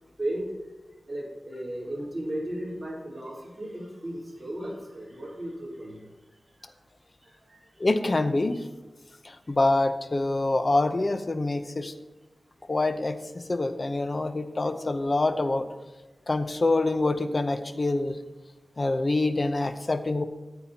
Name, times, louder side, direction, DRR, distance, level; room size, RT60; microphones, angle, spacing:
voice 1, 1.1-6.1 7.2-7.6, right 1 dB, 30° right, -6 dB, 3.9 m, -35 dB
voice 2, 7.8-8.7 9.2-11.9 12.7-15.7 16.3-18.2 18.8-20.2, left 2 dB, 45° left, 9 dB, 0.7 m, -26 dB
14.0 x 8.8 x 2.9 m, 1.1 s
wide cardioid pair, 75°, 0 cm